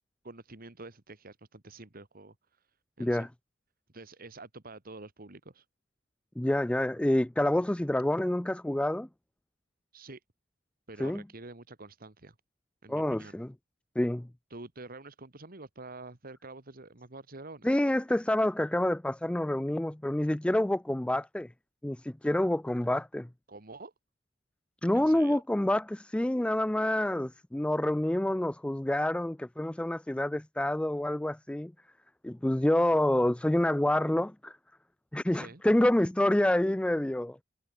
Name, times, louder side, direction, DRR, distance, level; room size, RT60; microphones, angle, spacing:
voice 1, 0.2-2.6 3.0-3.3 3.9-5.7 9.9-10.2 10.9-12.4 12.8-13.4 14.5-17.7 23.5-23.9 24.9-25.4 35.3-35.6, right 2 dB, 50° right, 2.1 m, -47 dB
voice 2, 6.4-9.1 11.0-11.2 12.9-13.5 14.0-14.3 17.6-21.5 21.8-23.3 24.8-31.7 32.2-34.5 35.1-37.4, left 1 dB, 5° left, 0.3 m, -27 dB
head